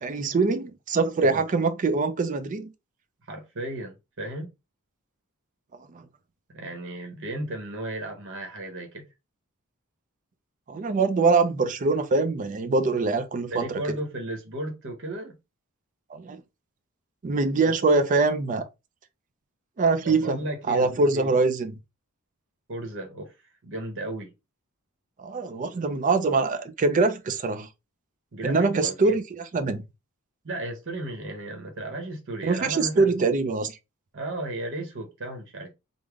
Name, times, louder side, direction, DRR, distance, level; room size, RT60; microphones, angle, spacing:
voice 1, 0.0-2.7 5.9-6.0 10.7-14.0 16.1-16.4 17.2-18.7 19.8-20.4 20.7-21.8 25.2-27.7 28.4-29.8 32.4-33.8, right 3 dB, 35° right, 0.4 m, -23 dB
voice 2, 3.3-4.5 6.5-9.0 13.5-15.3 17.6-17.7 20.0-21.4 22.7-23.3 23.6-24.3 28.3-29.1 30.4-33.1 34.1-35.7, right 1 dB, 55° right, 0.8 m, -34 dB
3.5 x 2.1 x 3.4 m
head